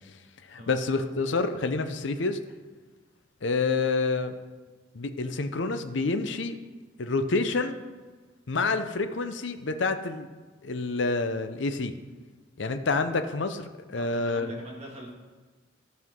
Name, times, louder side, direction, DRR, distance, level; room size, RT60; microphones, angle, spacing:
voice 1, 0.5-2.4 3.4-4.3 4.9-6.6 7.0-7.8 8.5-10.3 10.6-11.9 12.6-14.5, left 3 dB, 70° left, 9 dB, 0.7 m, -28 dB
voice 2, 14.0-15.1, right 1 dB, 30° right, -3 dB, 2.1 m, -43 dB
15.0 x 5.8 x 3.7 m, 1.3 s
head